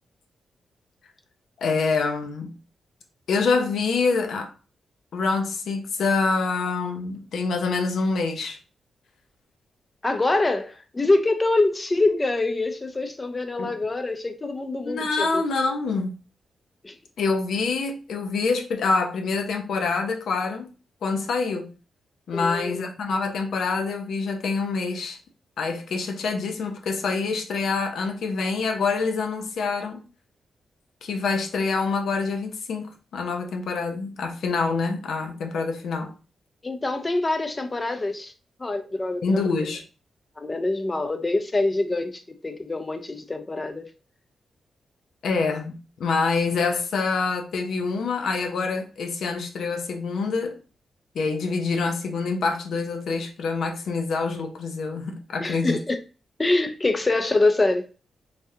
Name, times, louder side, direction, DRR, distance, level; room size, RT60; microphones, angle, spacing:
voice 1, 1.6-2.5 3.3-4.5 5.1-8.6 13.6-13.7 14.8-16.1 17.2-20.7 21.0-21.7 22.3-25.2 25.6-30.0 31.0-36.1 39.2-39.8 45.2-50.6 51.1-55.8, left 4 dB, 75° left, 0.6 m, -26 dB
voice 2, 10.0-15.4 16.8-16.9 22.3-22.9 36.6-38.3 38.6-39.7 40.4-43.9 55.4-56.0 56.4-57.9, left 2 dB, 25° left, 0.5 m, -25 dB
3.4 x 2.4 x 2.7 m
cardioid pair, 100°, 0 cm